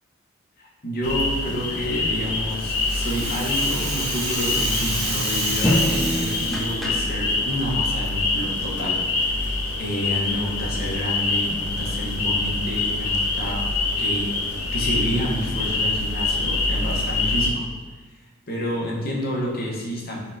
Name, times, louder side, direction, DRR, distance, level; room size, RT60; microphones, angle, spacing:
voice 1, 0.6-13.6 14.0-17.7 18.5-20.2, equal, 45° left, -3 dB, 0.8 m, -29 dB
sound 1, 1.0-17.5, left 3 dB, 85° left, 0.5 m, -25 dB
Rattle (instrument), 2.2-7.0, right 2 dB, 75° right, 1.0 m, -30 dB
sound 2, 4.6-7.5, equal, ahead, 0.4 m, -27 dB
4.2 x 3.3 x 2.5 m, 1.3 s
head